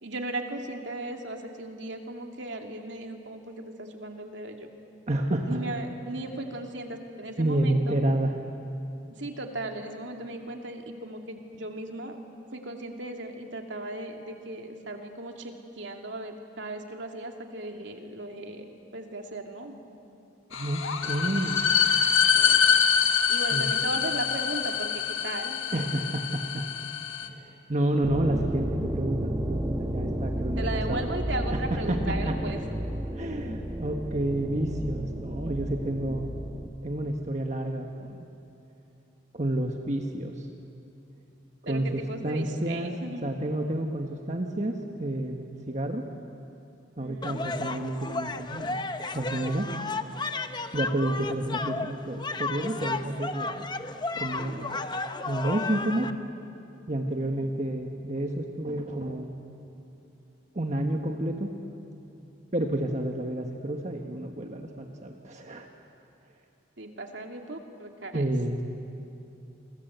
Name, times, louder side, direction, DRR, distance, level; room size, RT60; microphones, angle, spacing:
voice 1, 0.0-4.7 5.4-7.9 9.1-12.2 12.5-19.7 22.3-22.8 23.3-25.6 30.6-32.6 41.7-43.3 47.0-47.4 57.1-57.5 66.8-68.2, right 2 dB, 65° right, 3 dB, 2.5 m, -37 dB
voice 2, 5.1-5.5 7.4-8.3 20.5-21.6 23.5-23.7 25.7-26.7 27.2-31.1 31.5-32.0 32.3-32.4 33.2-36.3 36.8-38.2 39.3-40.5 41.7-42.9 43.2-46.1 47.0-48.8 49.1-49.7 50.7-53.7 54.2-54.8 55.2-56.1 56.9-59.3 60.5-61.5 62.5-65.7 68.1-68.6, right 1 dB, 35° right, 3 dB, 1.4 m, -30 dB
sound 1, 20.5-27.3, left 7 dB, 85° left, 1.6 m, -25 dB
sound 2, 28.0-36.7, right 1 dB, 15° right, 1.6 m, -32 dB
sound 3, 47.2-56.1, left 3 dB, 20° left, 0.8 m, -33 dB
29.5 x 24.0 x 8.1 m, 2.8 s
head